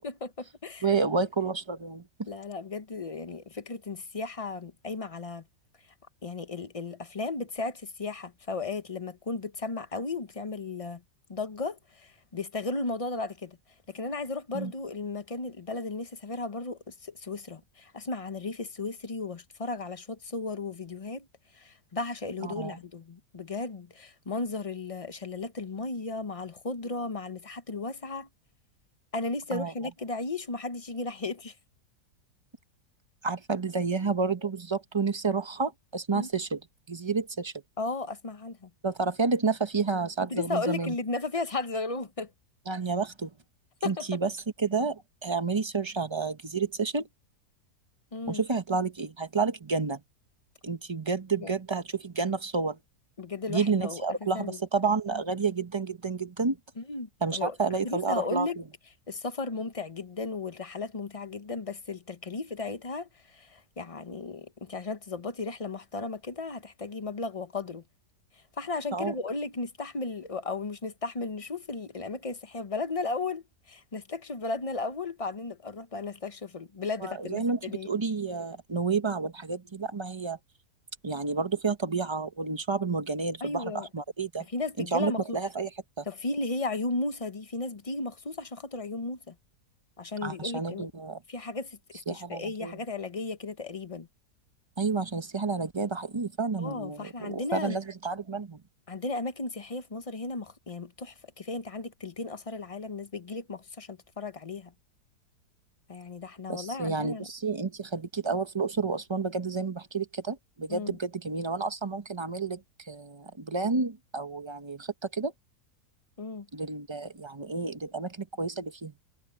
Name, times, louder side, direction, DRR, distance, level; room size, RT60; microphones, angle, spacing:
voice 1, 0.0-1.0 2.3-5.4 6.2-11.0 11.3-13.6 13.9-21.3 21.5-28.3 29.1-31.5 36.1-36.3 37.8-38.7 40.3-42.3 43.8-44.2 48.1-48.4 51.4-51.5 53.2-54.0 54.3-54.6 56.8-57.6 57.8-58.6 59.1-67.8 68.6-77.9 83.4-83.9 84.5-85.4 86.1-89.3 90.0-90.9 91.3-91.8 92.1-94.1 96.6-97.8 98.9-104.7 105.9-107.3 110.7-111.0 116.2-116.5, left 3 dB, 30° left, 0.8 m, -35 dB
voice 2, 0.8-2.1 14.5-14.7 22.4-22.8 29.5-29.7 33.2-36.6 36.9-37.5 38.8-40.9 42.7-43.3 43.8-44.3 44.6-47.1 48.3-50.0 50.6-52.8 53.5-56.6 57.2-58.5 68.9-69.1 77.0-80.4 81.0-84.4 84.8-85.7 86.0-86.1 90.2-91.2 92.1-92.8 94.8-98.6 106.5-115.3 116.5-118.9, right 4 dB, 20° right, 0.9 m, -30 dB
omnidirectional pair, 1.8 m